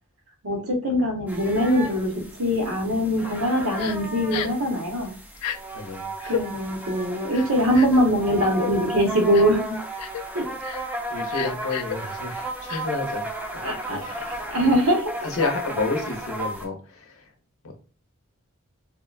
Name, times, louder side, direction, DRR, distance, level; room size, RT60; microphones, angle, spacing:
voice 1, 0.4-5.1 6.2-9.8 10.3-10.5 13.6-14.0 14.2-15.2, equal, 75° right, 2 dB, 0.9 m, -22 dB
sound 1, 1.3-16.6, right 1 dB, 5° right, 0.4 m, -34 dB
Crying sobbing, 3.8-4.0 4.3-4.6 5.3-5.6 6.2-6.4 7.3-8.0 8.6-8.7 9.3-9.6 10.0-10.2 10.6-10.8 11.3-12.0 12.7-12.8, left 9 dB, 90° left, 0.3 m, -31 dB
voice 2, 5.7-6.1 11.1-13.6 13.9-14.6 15.2-17.2 17.6-17.7, left 3 dB, 65° left, 3 dB, 0.7 m, -30 dB
3.5 x 2.1 x 2.4 m, 0.38 s
head